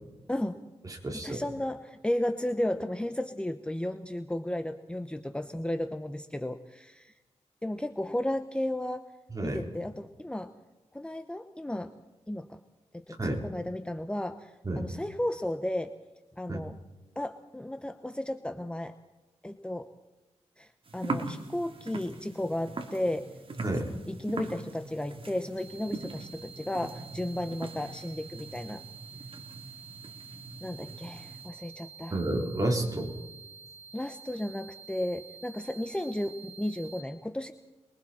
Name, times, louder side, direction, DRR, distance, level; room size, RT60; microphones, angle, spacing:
voice 1, 0.3-0.6 1.1-7.1 7.6-9.1 9.4-10.5 10.9-11.9 12.3-12.6 12.9-16.0 16.4-16.8 17.2-18.9 19.4-19.9 20.6-23.4 24.1-28.8 30.6-32.2 33.9-37.5, left 1 dB, 10° left, 8 dB, 0.9 m, -34 dB
voice 2, 1.0-1.4 9.3-9.6 13.2-13.4 14.6-14.9 16.5-16.6 23.6-23.9 32.1-33.1, right 1 dB, 30° right, 1 dB, 4.1 m, -30 dB
sound 1, 20.8-31.5, right 3 dB, 50° right, 2.8 m, -41 dB
sound 2, 25.6-37.0, right 6 dB, 60° left, 2.8 m, -49 dB
27.5 x 22.5 x 4.4 m, 1.1 s
wide cardioid pair, 95°, 11 cm